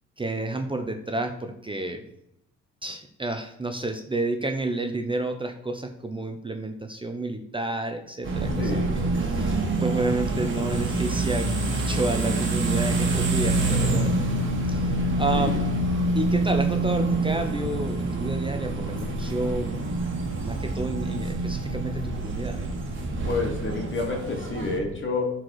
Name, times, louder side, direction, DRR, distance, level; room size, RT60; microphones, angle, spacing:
voice 1, 0.2-2.0 2.8-14.2 14.7-15.6 16.2-19.9 20.4-22.6, right 2 dB, 15° right, 5 dB, 0.9 m, -30 dB
sound 1, 8.2-24.8, right 2 dB, 40° right, 2.3 m, -26 dB
voice 2, 8.6-8.9 15.3-15.6 23.2-25.3, left 3 dB, 40° left, 2 dB, 2.6 m, -29 dB
10.5 x 4.7 x 4.8 m, 0.82 s
cardioid pair, 90°, 30 cm